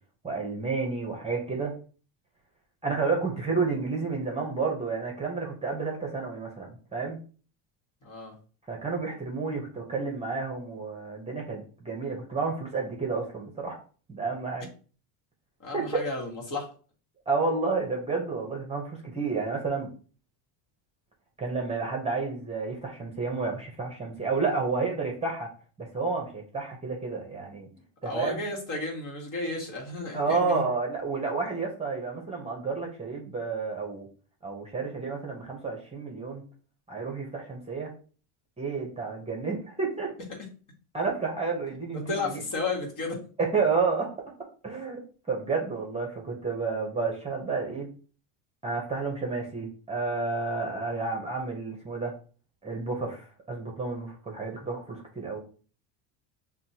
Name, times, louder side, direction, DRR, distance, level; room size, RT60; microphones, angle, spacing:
voice 1, 0.2-1.8 2.8-7.2 8.7-13.8 14.1-14.7 15.7-15.8 17.3-19.9 21.4-25.5 25.8-27.7 28.0-28.4 30.1-34.1 34.4-36.4 36.9-37.9 38.6-40.1 40.9-42.4 43.4-44.1 44.6-45.0 45.3-47.9 48.6-52.1 52.6-55.4, right 4 dB, 15° right, 0 dB, 0.9 m, -30 dB
voice 2, 8.0-8.3 15.6-16.7 28.0-30.6 31.5-31.6 40.3-40.4 41.9-43.2, left 3 dB, 40° left, -1 dB, 1.5 m, -33 dB
5.9 x 2.3 x 2.8 m, 0.39 s
supercardioid pair, 120°, 48 cm